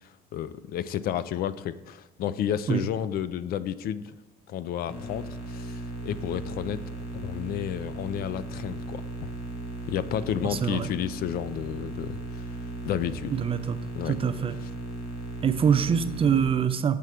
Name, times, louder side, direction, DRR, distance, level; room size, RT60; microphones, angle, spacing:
voice 1, 0.0-4.2 4.5-9.3 9.9-12.4 12.8-13.3 13.9-14.2, left 10 dB, 65° left, 15 dB, 0.4 m, -31 dB
sound 1, 4.9-16.4, right 2 dB, 80° left, 1.5 m, -37 dB
voice 2, 10.5-10.9 13.3-13.8 14.1-14.6 15.4-17.0, right 7 dB, 35° right, 11 dB, 0.5 m, -24 dB
6.9 x 4.7 x 5.7 m, 1.1 s
cardioid pair, 110°, 17 cm